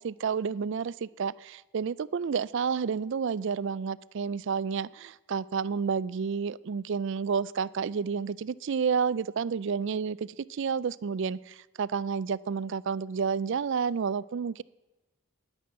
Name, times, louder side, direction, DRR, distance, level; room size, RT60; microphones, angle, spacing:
voice 1, 0.0-14.6, right 6 dB, 55° right, 20 dB, 0.4 m, -30 dB
10.5 x 10.5 x 8.2 m, 1.1 s
head